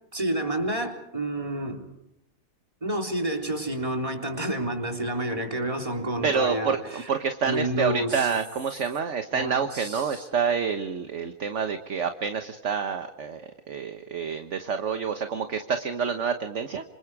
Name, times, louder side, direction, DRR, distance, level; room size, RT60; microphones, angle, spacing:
voice 1, 0.1-1.9 2.8-7.1 7.4-8.3 9.3-10.2, right 1 dB, 15° right, 2 dB, 3.6 m, -29 dB
voice 2, 6.2-16.8, right 6 dB, 45° right, 7 dB, 1.3 m, -28 dB
27.0 x 27.0 x 4.8 m, 0.84 s
omnidirectional pair, 2.0 m